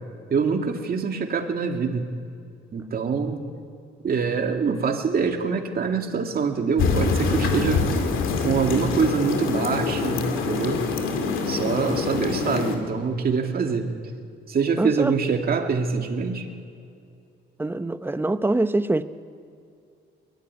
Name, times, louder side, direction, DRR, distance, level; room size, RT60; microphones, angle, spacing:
voice 1, 0.3-2.1 2.7-3.4 4.0-7.8 8.4-10.8 11.5-13.9 14.5-16.5, right 5 dB, 50° right, 4 dB, 2.3 m, -24 dB
sound 1, 6.8-12.8, left 4 dB, 90° left, 2.4 m, -25 dB
voice 2, 14.8-15.1 17.6-19.0, right 2 dB, 10° right, 12 dB, 0.8 m, -24 dB
22.5 x 13.0 x 9.6 m, 2.4 s
cardioid pair, 90°, 20 cm